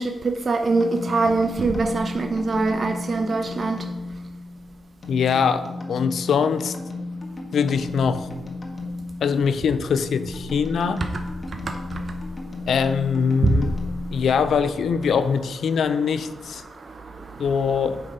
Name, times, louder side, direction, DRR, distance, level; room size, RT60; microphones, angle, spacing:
voice 1, 0.0-3.9 11.0-11.2 11.5-12.2 13.4-13.5 16.6-17.6, right 3 dB, 50° right, 5 dB, 0.6 m, -24 dB
sound 1, 0.7-15.1, left 2 dB, 45° left, 1.4 m, -35 dB
voice 2, 5.1-6.7 7.5-8.3 9.2-11.0 12.7-13.7 14.1-16.6 17.4-18.0, left 6 dB, 75° left, 12 dB, 0.4 m, -22 dB
7.6 x 3.8 x 4.9 m, 1.1 s
supercardioid pair, 50°, 0 cm